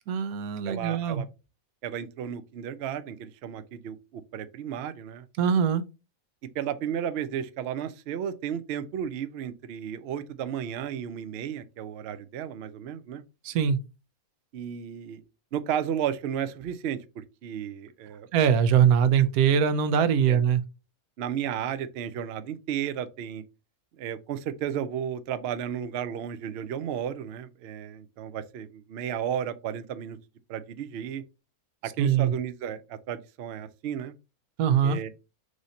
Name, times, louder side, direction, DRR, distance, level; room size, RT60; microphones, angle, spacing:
voice 1, 0.1-1.2 5.4-5.8 13.4-13.8 18.3-20.6 32.0-32.3 34.6-35.0, right 8 dB, 85° right, 1.1 m, -22 dB
voice 2, 0.7-1.3 1.8-5.3 6.5-13.2 14.5-15.2 15.5-18.3 20.3-20.4 21.2-23.4 24.0-30.2 30.5-31.2 32.0-34.1 34.8-35.1, right 9 dB, 65° right, 0.6 m, -33 dB
4.9 x 2.6 x 4.0 m
omnidirectional pair, 1.5 m